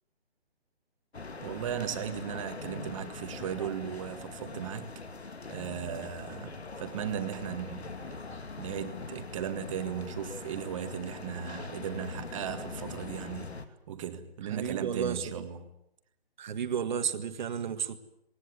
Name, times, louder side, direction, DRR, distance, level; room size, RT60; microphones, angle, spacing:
sound 1, 1.1-13.7, left 4 dB, 85° left, 2.5 m, -42 dB
voice 1, 1.4-4.9 5.5-8.2 8.6-13.6 13.9-15.7, right 9 dB, 30° right, 1.8 m, -37 dB
voice 2, 14.5-15.2 16.4-18.0, right 7 dB, 45° right, 1.8 m, -32 dB
20.5 x 19.0 x 9.5 m
hypercardioid pair, 155°, 32 cm